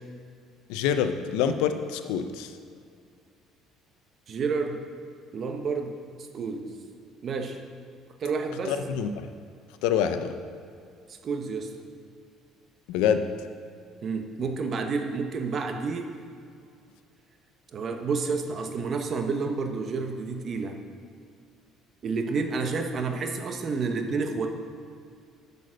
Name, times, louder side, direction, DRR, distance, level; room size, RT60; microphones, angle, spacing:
voice 1, 0.7-2.5 8.7-9.3 9.8-10.3 12.9-13.2, left 8 dB, 85° left, 9 dB, 0.6 m, -26 dB
voice 2, 4.3-4.8 5.3-5.9 6.2-6.7 7.2-7.6 8.2-8.8 11.2-11.7 14.0-16.1 17.7-20.8 22.0-24.5, right 4 dB, 45° right, 5 dB, 1.0 m, -29 dB
8.3 x 6.9 x 6.4 m, 2.4 s
supercardioid pair, 95°, 0 cm